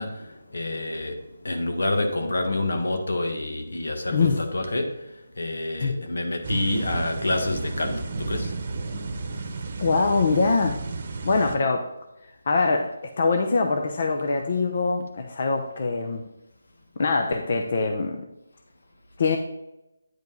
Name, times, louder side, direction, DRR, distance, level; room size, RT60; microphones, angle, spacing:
voice 1, 0.0-8.5, left 2 dB, 80° left, 4 dB, 1.6 m, -28 dB
sound 1, 6.4-11.6, right 3 dB, 40° right, 1.0 m, -33 dB
voice 2, 9.8-10.8 11.2-11.9 12.5-12.9 13.2-16.2 17.0-18.2 19.2-19.4, left 4 dB, 45° left, 4 dB, 0.7 m, -23 dB
9.3 x 5.2 x 3.9 m, 0.91 s
hypercardioid pair, 170°, 0 cm